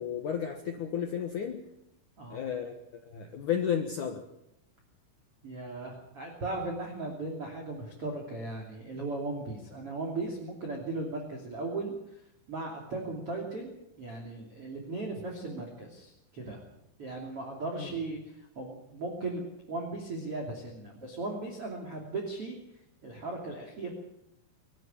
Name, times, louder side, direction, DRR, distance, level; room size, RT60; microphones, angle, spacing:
voice 1, 0.0-1.6 2.3-2.7 3.1-4.2 17.8-17.9, left 8 dB, 85° left, 4 dB, 1.7 m, -32 dB
voice 2, 5.4-16.6 17.0-19.4 19.7-22.6 23.0-23.9, right 2 dB, 35° right, 0 dB, 3.0 m, -37 dB
24.0 x 13.0 x 8.8 m, 0.81 s
omnidirectional pair, 6.0 m